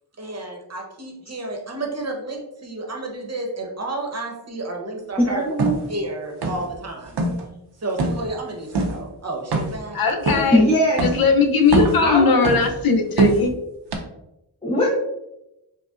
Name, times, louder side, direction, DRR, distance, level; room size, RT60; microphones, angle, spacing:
voice 1, 0.2-5.4 5.9-7.2 7.8-10.0 10.6-10.8, right 2 dB, 35° right, 1 dB, 0.9 m, -31 dB
voice 2, 5.3-5.8 10.5-11.0 12.0-12.3 14.6-14.9, equal, 15° left, -5 dB, 0.7 m, -19 dB
sound 1, 5.6-5.8 6.4-6.8 7.1-7.4 8.0-8.2 8.7-9.0 9.5-9.9 10.3-10.5 11.0-11.2 11.6-12.1 12.4-12.8 13.2-13.5 13.9-14.0, right 3 dB, 65° right, 0.7 m, -22 dB
voice 3, 9.9-10.7 11.0-13.5, left 4 dB, 55° left, 4 dB, 0.6 m, -18 dB
5.1 x 2.2 x 2.4 m, 0.89 s
wide cardioid pair, 100°, 43 cm